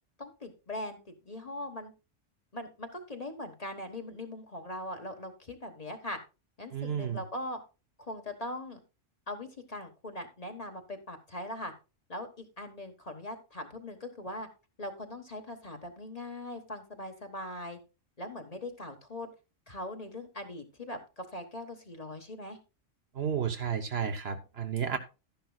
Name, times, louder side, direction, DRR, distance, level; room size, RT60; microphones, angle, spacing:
voice 1, 0.2-1.9 2.5-6.2 6.6-7.6 8.0-8.8 9.3-11.7 12.1-14.5 14.8-17.8 18.2-19.3 19.7-22.6, left 1 dB, 30° left, 5 dB, 1.3 m, -41 dB
voice 2, 6.7-7.2 23.1-25.0, right 7 dB, 55° right, 7 dB, 1.1 m, -32 dB
12.0 x 10.5 x 2.3 m, 0.29 s
omnidirectional pair, 1.3 m